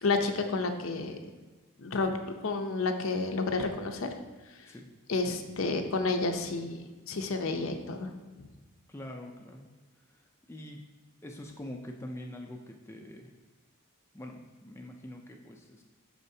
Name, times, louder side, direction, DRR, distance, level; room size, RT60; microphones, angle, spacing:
voice 1, 0.0-1.2 1.8-2.1 2.4-4.1 4.5-4.7 5.1-8.1 8.4-8.5, left 3 dB, 65° left, 5 dB, 0.6 m, -30 dB
voice 2, 8.9-9.7 10.1-10.8 11.2-13.3 14.1-15.8, left 1 dB, 10° left, 1 dB, 0.4 m, -44 dB
12.0 x 4.3 x 2.8 m, 1.3 s
head